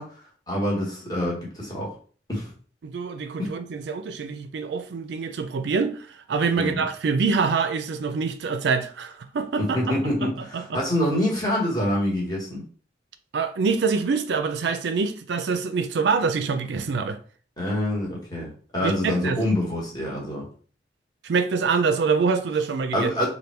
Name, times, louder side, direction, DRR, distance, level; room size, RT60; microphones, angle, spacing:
voice 1, 0.0-1.9 2.3-2.5 3.4-3.5 6.6-6.8 9.6-12.6 17.6-20.5 22.9-23.3, left 1 dB, 20° left, 1.2 m, -26 dB
voice 2, 2.8-9.8 10.2-10.8 13.3-17.2 18.8-19.4 21.2-23.1, right 5 dB, 75° right, 0.4 m, -25 dB
3.4 x 2.2 x 4.3 m
head